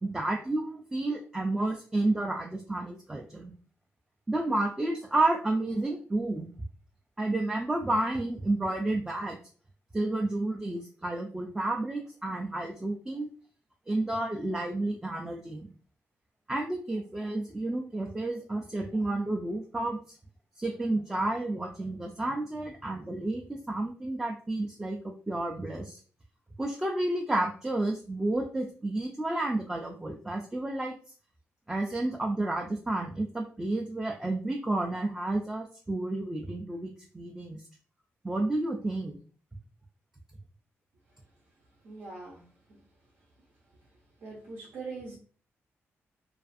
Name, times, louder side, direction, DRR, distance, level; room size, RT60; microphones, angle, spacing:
voice 1, 0.0-3.5 4.3-6.5 7.2-9.4 9.9-13.3 13.9-15.7 16.5-20.2 20.6-26.0 26.6-31.0 31.7-37.6 38.2-39.2, right 2 dB, 10° right, 1 dB, 0.3 m, -31 dB
voice 2, 41.8-42.8 44.2-45.2, right 3 dB, 70° right, -3 dB, 0.7 m, -43 dB
2.4 x 2.4 x 2.5 m, 0.41 s
wide cardioid pair, 135°, 5 cm